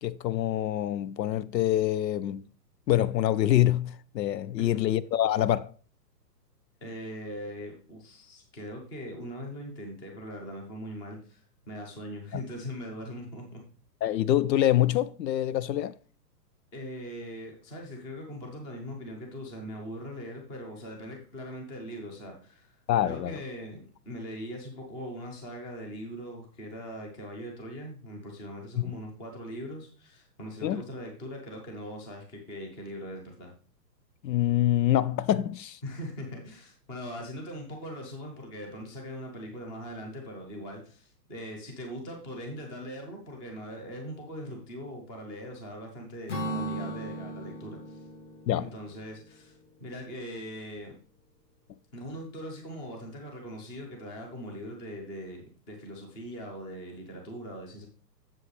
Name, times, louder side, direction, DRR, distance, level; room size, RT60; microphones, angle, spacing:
voice 1, 0.0-2.4 2.9-5.7 12.3-12.4 14.0-15.9 22.9-23.4 28.8-28.9 30.6-30.8 34.2-35.8 48.5-48.7, left 12 dB, 80° left, 0.6 m, -25 dB
voice 2, 6.8-13.6 16.7-22.8 23.0-33.5 35.8-48.0 48.6-50.9 51.9-57.9, equal, 10° left, 0.7 m, -41 dB
Acoustic guitar / Strum, 46.3-49.9, right 1 dB, 45° left, 1.9 m, -37 dB
7.7 x 7.3 x 3.2 m
hypercardioid pair, 165°, 50 cm